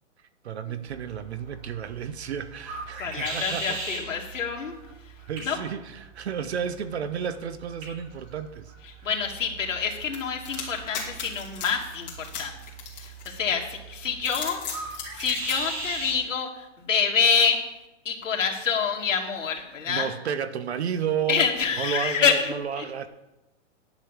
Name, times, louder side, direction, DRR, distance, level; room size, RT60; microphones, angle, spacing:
voice 1, 0.4-4.3 5.3-8.7 19.9-21.5 21.8-23.1, right 7 dB, 55° right, 12 dB, 0.9 m, -32 dB
sound 1, 0.9-16.2, right 3 dB, 25° right, 3.2 m, -40 dB
voice 2, 3.0-4.8 5.5-5.6 9.0-12.5 13.0-17.7 18.0-20.1 21.3-23.1, left 6 dB, 75° left, 1 dB, 2.3 m, -27 dB
sound 2, 10.1-13.6 14.1-15.6, left 7 dB, 35° left, 2.7 m, -36 dB
10.5 x 5.2 x 7.4 m, 0.97 s
hypercardioid pair, 175°, 38 cm